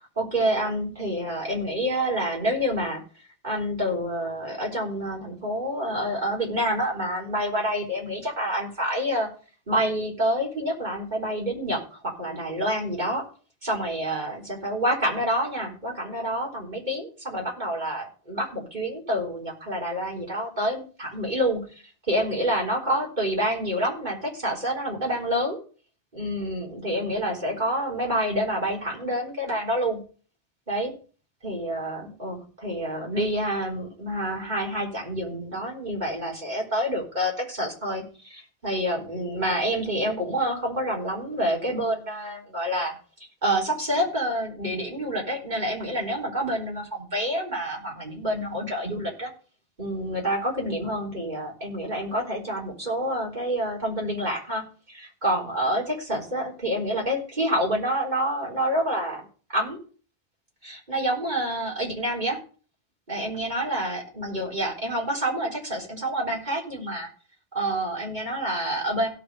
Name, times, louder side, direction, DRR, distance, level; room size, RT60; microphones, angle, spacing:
voice 1, 0.2-3.0 3.4-9.3 9.7-13.2 13.6-21.6 22.1-25.6 26.1-30.0 30.7-30.9 31.4-42.9 43.4-49.3 49.8-54.6 54.9-59.2 59.5-59.8 60.6-62.4 63.1-67.1 67.5-69.1, equal, 45° right, -1 dB, 4.2 m, -28 dB
16.5 x 6.2 x 4.9 m, 0.39 s
omnidirectional pair, 1.1 m